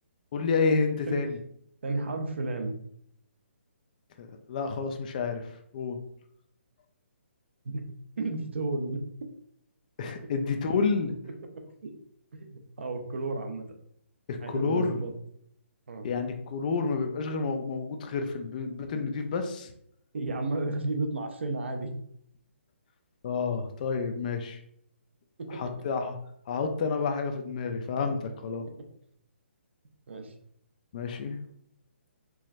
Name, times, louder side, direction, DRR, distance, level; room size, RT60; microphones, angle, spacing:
voice 1, 0.3-1.4 4.2-5.5 5.7-6.0 10.0-11.2 14.3-15.0 16.0-19.7 23.2-24.6 25.5-26.1 26.5-28.7 30.9-31.4, left 4 dB, 40° left, 6 dB, 0.5 m, -29 dB
voice 2, 1.8-2.8 7.6-7.9 8.2-9.0 11.8-11.9 12.3-13.6 14.4-15.1 15.9-16.1 20.1-21.9 25.4-25.6 30.1-30.3, right 2 dB, 60° right, 4 dB, 0.7 m, -32 dB
4.7 x 3.0 x 2.6 m, 0.69 s
figure-of-eight pair, 140°, 7 cm